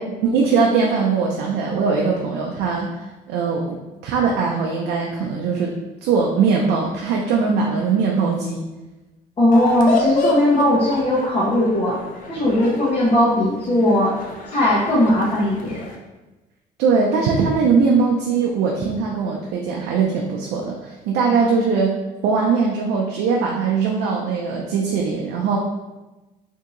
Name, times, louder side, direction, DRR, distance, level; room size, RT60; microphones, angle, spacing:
voice 1, 0.1-3.8 4.0-5.7 6.0-8.6 16.8-22.0 22.2-25.6, right 5 dB, 85° right, -1 dB, 0.5 m, -20 dB
voice 2, 9.4-12.0 12.3-14.2 14.5-15.8, left 1 dB, 30° left, -9 dB, 1.0 m, -18 dB
sound 1, 9.5-16.0, left 3 dB, 55° left, 0.6 m, -28 dB
2.7 x 2.7 x 3.7 m, 1.1 s
cardioid pair, 110°, 17 cm